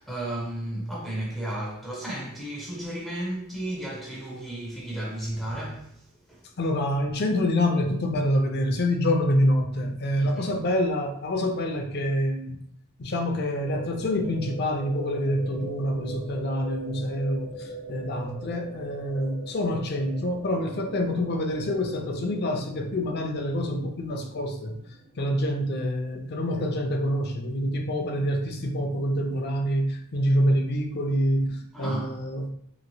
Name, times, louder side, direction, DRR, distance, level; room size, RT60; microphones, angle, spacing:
voice 1, 0.0-6.5 10.2-10.5 31.7-32.1, right 1 dB, ahead, 0.4 m, -34 dB
voice 2, 6.6-12.6 13.0-24.7 25.2-32.5, equal, 50° left, 0.5 m, -26 dB
sound 1, 13.6-25.8, right 2 dB, 55° right, 0.9 m, -42 dB
3.0 x 2.8 x 2.6 m
head